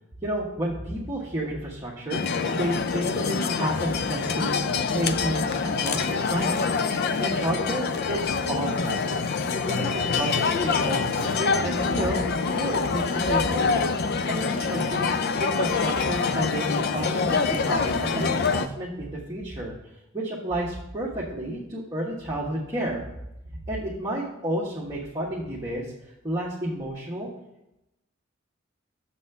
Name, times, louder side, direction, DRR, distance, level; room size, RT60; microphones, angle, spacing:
voice 1, 0.2-2.2 2.5-4.6 4.9-6.6 7.2-9.0 9.6-12.2 12.5-13.8 14.3-19.7 20.1-23.0 23.5-25.8 26.2-27.3, right 1 dB, 20° right, -6 dB, 1.2 m, -31 dB
sound 1, 2.1-18.7, left 5 dB, 50° left, 0.4 m, -25 dB
6.9 x 4.2 x 6.6 m, 0.89 s
head